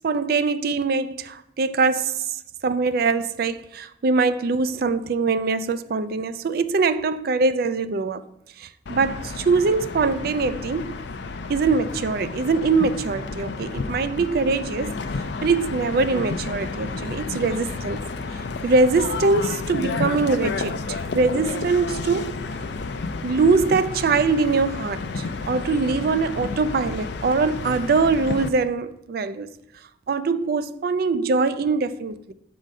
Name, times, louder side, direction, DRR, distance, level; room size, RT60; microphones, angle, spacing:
voice 1, 0.0-8.2 8.6-11.0 11.5-14.9 15.4-18.0 18.6-22.4 23.2-29.5 30.1-32.3, right 4 dB, 55° right, 0.4 m, -23 dB
sound 1, 8.9-28.5, left 4 dB, 70° left, 0.5 m, -31 dB
7.2 x 3.8 x 5.3 m
head